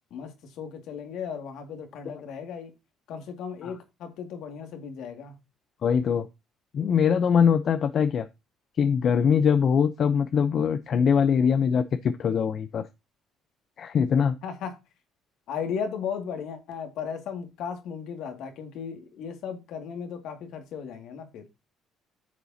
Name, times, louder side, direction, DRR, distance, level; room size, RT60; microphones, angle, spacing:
voice 1, 0.1-2.7 3.1-5.3 14.4-14.8 15.5-21.4, left 7 dB, 70° left, 2.2 m, -36 dB
voice 2, 5.8-6.3 6.7-8.3 8.8-12.9 13.8-14.4, left 7 dB, 55° left, 0.7 m, -22 dB
10.5 x 6.8 x 2.8 m
supercardioid pair, 85°, 0 cm